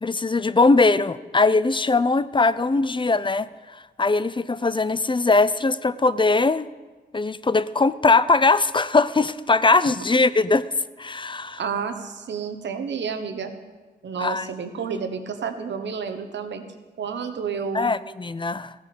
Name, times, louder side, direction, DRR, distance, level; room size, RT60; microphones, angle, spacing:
voice 1, 0.0-6.7 7.1-10.7 11.0-11.6 14.2-14.5 14.9-15.0 17.7-18.7, left 3 dB, 25° left, 16 dB, 0.6 m, -21 dB
voice 2, 11.6-13.5 14.0-16.6 17.0-17.9, right 6 dB, 90° right, 7 dB, 1.3 m, -30 dB
15.0 x 9.6 x 6.9 m, 1.3 s
cardioid pair, 60°, 18 cm